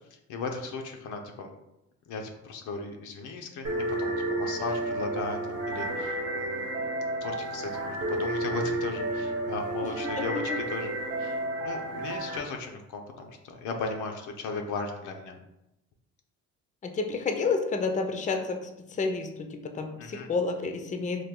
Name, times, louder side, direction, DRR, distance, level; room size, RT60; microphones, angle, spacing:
voice 1, 0.1-1.5 2.1-6.7 7.2-15.4 20.0-20.3, left 4 dB, 85° left, 3 dB, 0.6 m, -37 dB
sound 1, 3.6-12.4, right 1 dB, 55° right, 0.7 m, -31 dB
voice 2, 16.8-18.7 19.0-21.2, left 4 dB, 25° left, 5 dB, 0.4 m, -30 dB
3.2 x 2.2 x 3.6 m, 0.90 s
cardioid pair, 90°, 30 cm